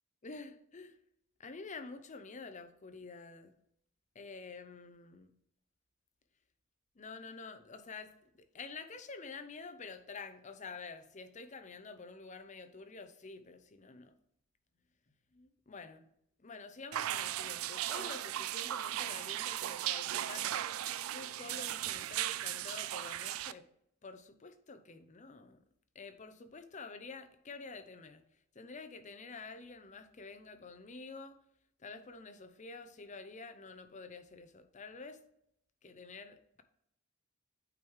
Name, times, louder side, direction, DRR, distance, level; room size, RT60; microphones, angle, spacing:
voice 1, 0.2-1.0 1.4-3.5 4.1-5.3 7.0-8.1 8.5-14.1 15.3-16.1 16.4-20.5 21.1-23.6 24.0-25.6 25.9-28.2 28.6-31.4 31.8-35.2 35.8-36.6, left 4 dB, 35° left, 10 dB, 0.6 m, -48 dB
sound 1, 16.9-23.5, right 12 dB, 80° right, 0.3 m, -37 dB
8.8 x 4.6 x 3.2 m, 0.74 s
head